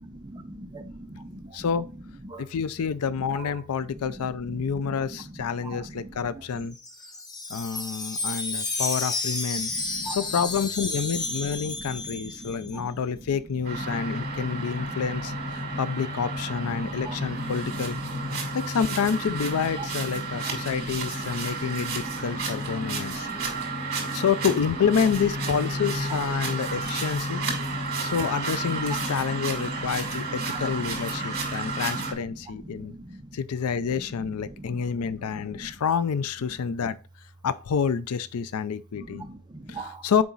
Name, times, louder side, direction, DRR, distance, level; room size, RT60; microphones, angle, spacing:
voice 1, 0.2-1.7 2.2-2.4 3.4-3.5 4.5-5.0 5.6-6.1 9.7-10.2 11.6-12.0 12.2-12.9 16.8-17.2 19.8-19.9 21.6-21.7 22.8-22.9 23.2-23.4 27.4-27.6 29.8-29.9 30.5-30.6 31.1-31.2 32.5-33.4 34.6-34.8 35.2-35.3 35.6-35.7 39.0-40.0, right 2 dB, 20° right, 0.6 m, -41 dB
voice 2, 1.5-1.9 2.4-6.8 7.5-9.7 10.1-18.0 18.5-23.3 24.1-27.4 28.0-33.0 33.3-37.0 37.4-39.3 39.7-40.2, left 6 dB, 80° left, 0.4 m, -28 dB
Wind chime, 6.6-12.8, left 3 dB, 20° left, 0.8 m, -32 dB
sound 1, 13.6-32.1, right 2 dB, 45° right, 2.6 m, -31 dB
7.1 x 4.7 x 3.9 m
head